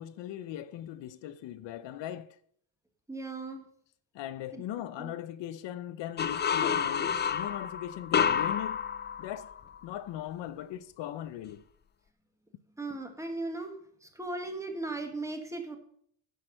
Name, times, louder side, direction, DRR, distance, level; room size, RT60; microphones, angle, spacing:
voice 1, 0.0-2.4 4.1-8.8 9.2-9.5 9.8-11.6, left 11 dB, 75° left, 0.7 m, -39 dB
voice 2, 3.1-3.7 4.5-4.6 5.0-5.1 12.8-13.8 14.0-15.8, right 2 dB, 5° right, 1.4 m, -37 dB
sound 1, 6.2-9.8, left 7 dB, 25° left, 0.4 m, -29 dB
10.0 x 6.6 x 6.4 m
cardioid pair, 170°, 44 cm